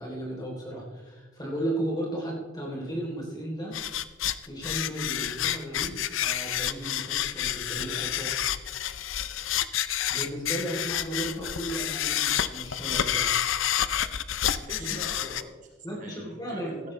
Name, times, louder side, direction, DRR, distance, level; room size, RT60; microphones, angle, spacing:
voice 1, 0.0-3.8 4.5-8.5 10.1-13.4 14.9-15.0 15.8-16.8, right 1 dB, 20° left, -3 dB, 3.3 m, -35 dB
sound 1, 3.7-15.4, left 11 dB, 75° left, 0.5 m, -29 dB
voice 2, 14.6-16.6, equal, 40° right, -1 dB, 2.2 m, -44 dB
16.0 x 12.0 x 3.2 m, 1.3 s
head